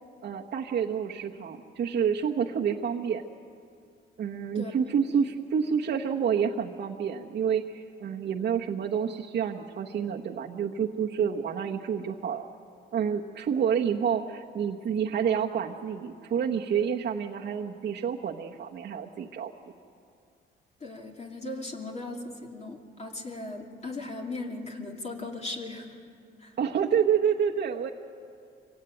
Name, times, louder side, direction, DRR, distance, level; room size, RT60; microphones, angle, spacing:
voice 1, 0.2-3.2 4.2-12.5 12.9-19.5 26.6-27.9, right 7 dB, 60° right, -2 dB, 1.2 m, -28 dB
voice 2, 20.8-26.0 26.4-26.5, left 2 dB, 35° left, 0 dB, 2.8 m, -38 dB
24.5 x 17.5 x 9.1 m, 2.3 s
cardioid pair, 90°, 20 cm